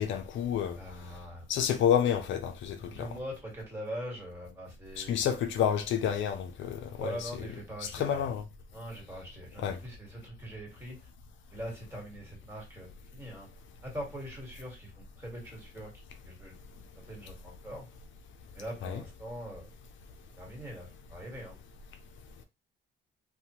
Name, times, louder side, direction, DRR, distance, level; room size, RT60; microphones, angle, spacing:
voice 1, 0.0-0.8 1.5-3.1 5.0-7.3 7.9-8.4 9.6-9.8 18.8-19.0, left 9 dB, 75° left, 0.5 m, -29 dB
voice 2, 0.8-1.5 2.8-5.3 7.0-8.3 8.7-11.0 11.5-13.5 13.8-16.6 17.0-17.9 18.5-19.7 20.4-21.6, equal, 10° right, 1.7 m, -42 dB
2.7 x 2.2 x 2.9 m
cardioid pair, 90°, 20 cm